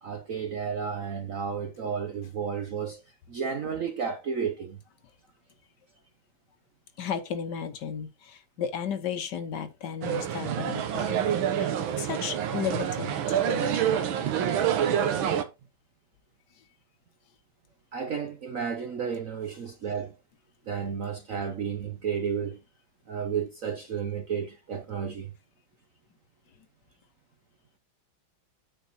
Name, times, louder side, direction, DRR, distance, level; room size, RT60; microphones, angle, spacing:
voice 1, 0.0-3.0 3.3-4.8 17.9-20.1 20.7-22.6 23.1-25.3, right 7 dB, 60° right, 0.9 m, -32 dB
voice 2, 7.0-13.9 16.5-16.7, left 7 dB, 60° left, 1.4 m, -35 dB
sound 1, 10.0-15.4, right 9 dB, 75° right, 1.7 m, -27 dB
9.3 x 4.5 x 4.1 m
omnidirectional pair, 2.2 m